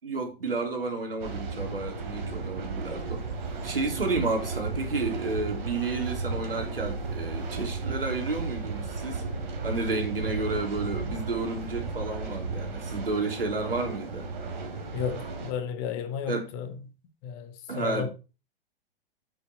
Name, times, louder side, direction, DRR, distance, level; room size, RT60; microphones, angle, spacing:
voice 1, 0.0-3.3 3.6-9.2 9.6-14.3 16.3-16.5 17.7-18.1, right 3 dB, 75° right, 3.9 m, -31 dB
sound 1, 1.2-15.5, right 4 dB, 50° right, 3.6 m, -34 dB
voice 2, 14.9-16.7 17.2-18.1, left 7 dB, 35° left, 1.9 m, -33 dB
8.8 x 8.3 x 4.6 m
figure-of-eight pair, 105°, 29 cm